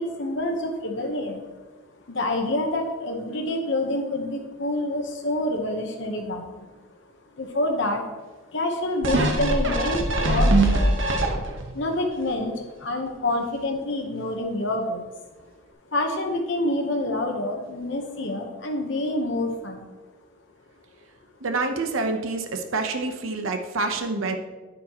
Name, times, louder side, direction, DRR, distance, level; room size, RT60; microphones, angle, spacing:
voice 1, 0.0-1.4 2.1-6.7 7.4-8.1 8.5-11.0 11.7-15.1 15.9-19.8, left 1 dB, 65° left, 3 dB, 1.0 m, -27 dB
sound 1, 9.0-11.7 12.2-12.3, right 1 dB, 65° right, 1.1 m, -21 dB
voice 2, 21.4-24.4, right 3 dB, 85° right, 5 dB, 0.9 m, -27 dB
10.0 x 9.0 x 3.0 m, 1.3 s
head